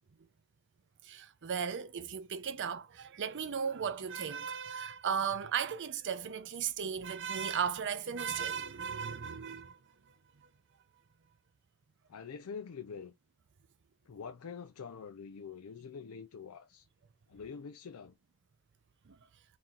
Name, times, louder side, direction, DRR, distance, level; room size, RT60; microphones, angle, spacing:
voice 1, 1.0-9.8 19.1-19.2, right 7 dB, 55° right, 0.6 m, -36 dB
voice 2, 12.1-13.1 14.1-16.8 17.3-18.1, left 6 dB, 75° left, 0.5 m, -45 dB
4.2 x 3.7 x 2.5 m
head